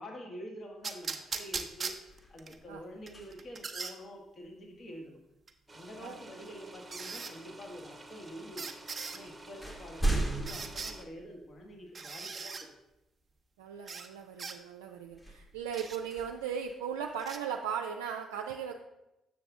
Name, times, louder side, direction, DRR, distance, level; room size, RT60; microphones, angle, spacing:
voice 1, 0.0-1.9 2.3-5.2 5.7-8.7 9.1-12.7, equal, 50° left, 0 dB, 1.4 m, -47 dB
sound 1, 0.8-2.6 3.1-4.0 5.5-5.6 6.9-7.3 8.6-9.2 10.5-11.0 11.9-12.7 13.9-14.1 14.4-14.6 15.7-16.0 17.2-17.4, right 4 dB, 40° right, 0.7 m, -39 dB
sound 2, 1.7-3.7 5.9-6.1 6.9-7.6 8.5-8.6 9.0-11.9 12.4-12.5 15.1-17.3, right 2 dB, 20° left, 1.2 m, -38 dB
sound 3, 5.7-11.0, right 1 dB, 15° right, 1.0 m, -51 dB
voice 2, 13.6-18.7, right 7 dB, 90° right, 1 dB, 0.3 m, -37 dB
7.4 x 5.9 x 3.6 m, 0.93 s
hypercardioid pair, 50°, 0 cm